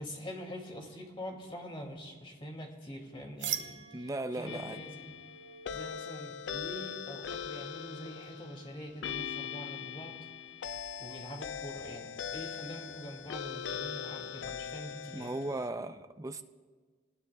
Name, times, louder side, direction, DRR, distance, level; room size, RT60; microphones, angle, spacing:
voice 1, 0.0-5.2 5.7-10.2 11.0-15.4, equal, 30° left, 1 dB, 2.4 m, -44 dB
sound 1, 3.4-9.0, right 9 dB, 75° right, 0.9 m, -44 dB
voice 2, 3.9-4.8 15.1-16.4, right 2 dB, 20° right, 8 dB, 0.5 m, -37 dB
sound 2, 4.5-15.7, left 7 dB, 70° left, 0.4 m, -41 dB
25.5 x 19.5 x 2.3 m, 1.5 s
head